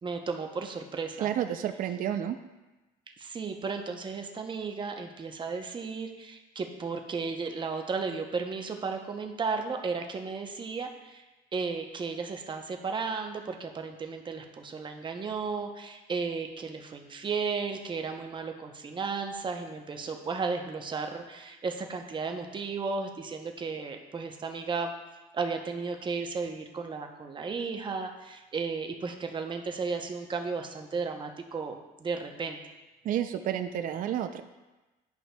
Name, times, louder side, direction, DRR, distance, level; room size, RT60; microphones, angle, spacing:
voice 1, 0.0-1.3 3.1-11.2 11.5-24.9 25.3-32.6, right 4 dB, 30° right, 4 dB, 0.7 m, -34 dB
voice 2, 1.2-2.4 33.0-34.4, right 10 dB, 55° right, 8 dB, 0.4 m, -30 dB
10.5 x 5.3 x 2.2 m, 1.1 s
cardioid pair, 110°, 17 cm